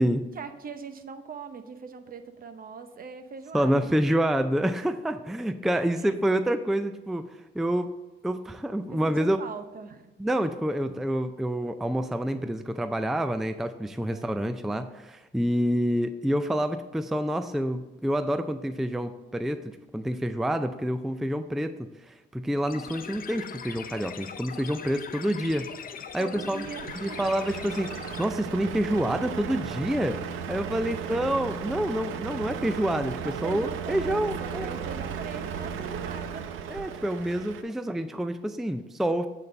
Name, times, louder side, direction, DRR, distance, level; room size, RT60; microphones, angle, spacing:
voice 1, 0.4-3.9 6.4-6.6 8.9-10.1 14.1-14.4 22.7-23.2 26.2-27.3 30.7-31.7 33.2-36.8, right 5 dB, 45° right, 9 dB, 0.8 m, -41 dB
voice 2, 3.5-7.9 8.2-9.4 10.2-25.7 26.1-26.7 27.0-27.9 28.2-30.2 30.5-34.7 36.7-39.3, equal, ahead, 9 dB, 0.4 m, -28 dB
sound 1, 22.7-28.2, left 7 dB, 45° left, 0.7 m, -41 dB
Truck, 26.4-37.6, right 7 dB, 85° right, 0.7 m, -35 dB
8.9 x 4.1 x 5.3 m, 1.1 s
cardioid pair, 90°, 20 cm